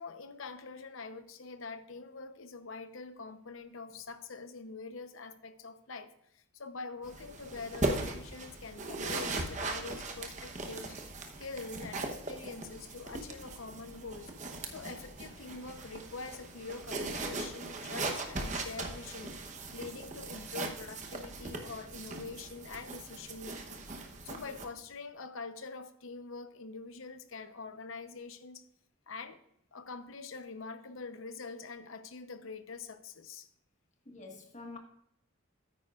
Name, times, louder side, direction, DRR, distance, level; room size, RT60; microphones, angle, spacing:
voice 1, 0.0-11.1 11.4-14.3 14.7-19.3 19.7-28.7 29.1-29.4 29.7-33.5, left 4 dB, 75° left, 9 dB, 0.8 m, -45 dB
sound 1, 7.0-24.7, right 2 dB, 35° right, 0.9 m, -39 dB
voice 2, 34.0-34.8, left 3 dB, 35° left, 2 dB, 1.5 m, -47 dB
13.5 x 9.4 x 2.4 m, 0.77 s
head